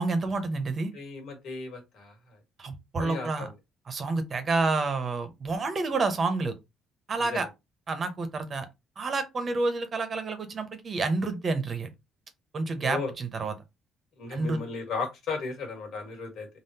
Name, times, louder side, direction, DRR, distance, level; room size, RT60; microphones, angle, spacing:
voice 1, 0.0-0.9 2.6-3.5 3.9-6.5 7.1-7.5 7.9-8.7 9.0-11.9 12.5-13.5 14.3-14.6, right 3 dB, 35° right, 0.7 m, -29 dB
voice 2, 0.9-2.4 3.0-3.5 7.2-7.5 12.8-13.1 14.2-16.5, left 4 dB, 65° left, 1.5 m, -35 dB
3.5 x 2.0 x 2.7 m
cardioid pair, 115°, 0 cm